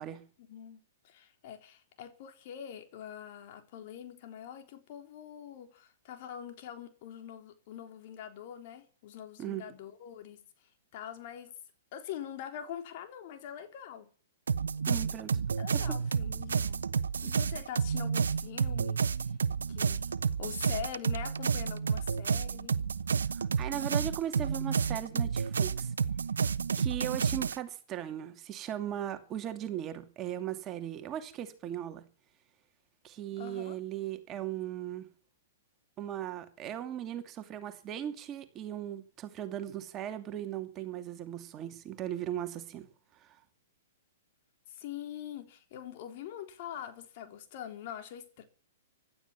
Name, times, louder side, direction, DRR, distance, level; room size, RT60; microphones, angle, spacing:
voice 1, 0.4-11.5 11.9-14.1 15.6-16.9 17.2-19.4 19.7-20.1 20.4-22.7 33.4-33.8 44.7-48.4, left 10 dB, 50° left, 3.8 m, -44 dB
sound 1, 14.5-27.6, right 6 dB, 85° right, 0.9 m, -30 dB
voice 2, 14.9-15.4 15.7-16.0 23.3-25.9 26.8-32.0 33.0-35.1 36.0-42.9 43.1-43.4, right 11 dB, 25° right, 2.6 m, -38 dB
16.0 x 12.5 x 7.2 m
hypercardioid pair, 130°, 0 cm